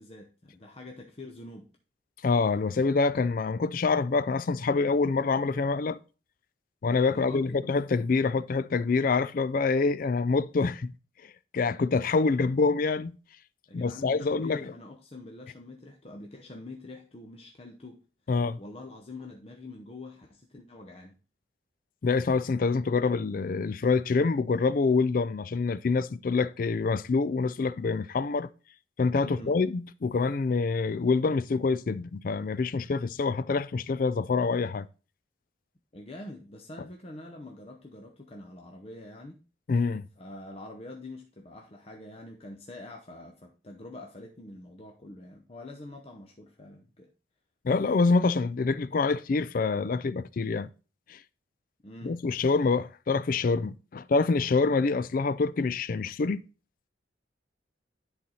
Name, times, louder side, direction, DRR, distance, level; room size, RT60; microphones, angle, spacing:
voice 1, 0.0-1.7 7.1-7.6 13.7-18.0 18.6-21.2 29.2-29.6 35.9-39.4 40.2-47.1 51.8-52.2, left 2 dB, 30° left, 0.7 m, -45 dB
voice 2, 2.2-6.0 6.8-10.9 11.5-13.2 13.7-14.6 18.3-18.6 22.0-28.5 29.0-34.9 39.7-40.0 47.6-50.7 51.1-51.2 52.0-56.4, left 4 dB, 45° left, 0.4 m, -26 dB
10.5 x 4.0 x 4.2 m
head